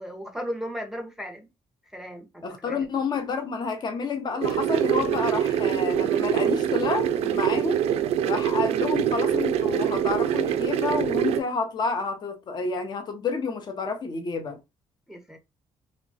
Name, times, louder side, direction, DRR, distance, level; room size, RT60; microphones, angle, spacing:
voice 1, 0.0-1.5 1.9-2.8 8.7-8.9 15.1-15.4, equal, 5° right, 0.6 m, -36 dB
voice 2, 2.4-7.8 8.3-14.6, left 4 dB, 40° left, 0.6 m, -29 dB
sound 1, 4.4-11.4, right 10 dB, 75° right, 0.4 m, -24 dB
3.0 x 2.2 x 2.6 m
cardioid pair, 95°, 11 cm